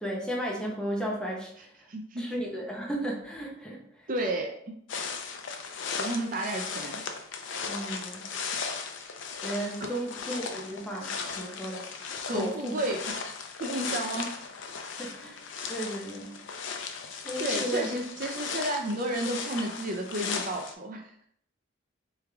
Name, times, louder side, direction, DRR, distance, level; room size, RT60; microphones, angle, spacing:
voice 1, 0.0-1.7 2.2-3.8 7.6-8.2 9.4-11.9 12.3-12.7 15.0-15.4 15.7-16.3 17.2-17.9, right 1 dB, 5° left, -3 dB, 0.8 m, -34 dB
voice 2, 1.9-2.2 4.1-4.7 6.0-7.0 9.8-9.9 12.3-13.2 13.6-14.3 17.4-21.1, right 1 dB, 45° right, 2 dB, 0.4 m, -32 dB
sound 1, 4.9-20.7, left 5 dB, 80° left, 0.5 m, -37 dB
3.5 x 3.2 x 3.4 m, 0.66 s
head